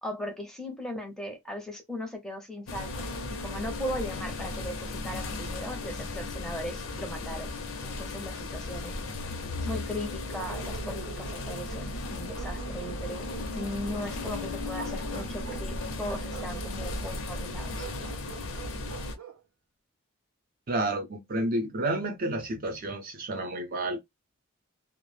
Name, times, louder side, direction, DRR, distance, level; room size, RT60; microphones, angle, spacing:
voice 1, 0.0-3.1 3.4-7.5 7.8-8.9 9.6-17.9, left 1 dB, 5° left, 0.6 m, -38 dB
sound 1, 2.7-19.2, left 2 dB, 75° left, 0.6 m, -36 dB
Bark, 10.3-11.9 12.3-14.1 14.7-15.7 16.0-17.0 17.7-19.4, right 5 dB, 85° right, 0.6 m, -45 dB
voice 2, 20.7-24.0, right 1 dB, 45° right, 0.5 m, -30 dB
2.3 x 2.0 x 3.0 m
head